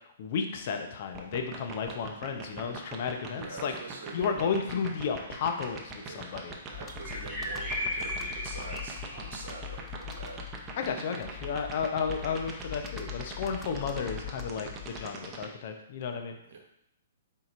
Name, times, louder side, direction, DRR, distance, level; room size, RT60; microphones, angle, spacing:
voice 1, 0.2-3.7 4.1-6.6 10.8-16.4, left 6 dB, 50° left, 5 dB, 0.6 m, -33 dB
sound 1, 1.1-15.5, right 5 dB, 20° right, 0.7 m, -41 dB
voice 2, 3.3-4.5 6.0-6.3 6.7-10.5 11.2-11.4 16.4-16.6, right 4 dB, 65° right, 1 dB, 1.0 m, -45 dB
sound 2, 5.6-5.8 7.0-9.6, left 1 dB, 5° right, 1.7 m, -36 dB
Computer keyboard, 6.7-15.3, left 13 dB, 20° left, 0.3 m, -43 dB
4.6 x 4.0 x 2.5 m, 0.76 s
hypercardioid pair, 130°, 0 cm